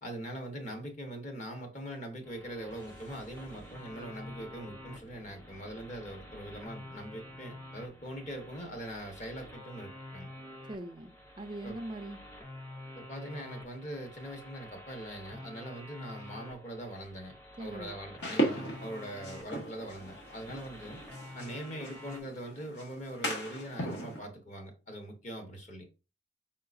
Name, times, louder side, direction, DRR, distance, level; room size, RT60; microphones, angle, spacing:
voice 1, 0.0-10.3 11.6-11.8 13.0-17.3 17.6-21.0 21.3-25.8, right 1 dB, 40° left, 1.2 m, -42 dB
sound 1, 2.2-22.2, left 1 dB, 10° left, 0.7 m, -49 dB
sound 2, 2.6-8.8, equal, 85° left, 1.4 m, -58 dB
voice 2, 10.7-12.2 17.6-18.0, right 1 dB, 25° right, 0.4 m, -41 dB
sound 3, 18.2-24.2, right 1 dB, 65° left, 1.3 m, -37 dB
4.8 x 3.8 x 2.6 m
head